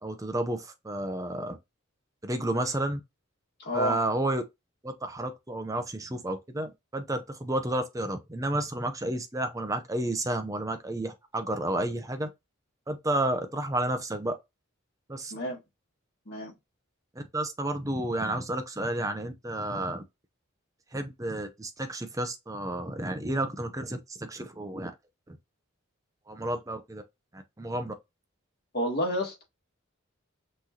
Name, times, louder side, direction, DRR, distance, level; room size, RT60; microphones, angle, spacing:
voice 1, 0.0-1.6 2.2-3.0 3.7-4.4 4.8-12.3 12.9-14.3 15.1-15.3 17.2-20.0 20.9-24.9 26.3-27.0 27.3-27.9, right 1 dB, 15° right, 0.6 m, -31 dB
voice 2, 3.6-4.0 15.3-15.6 16.3-16.5 28.7-29.4, left 1 dB, 50° left, 1.9 m, -30 dB
5.9 x 3.2 x 2.8 m
head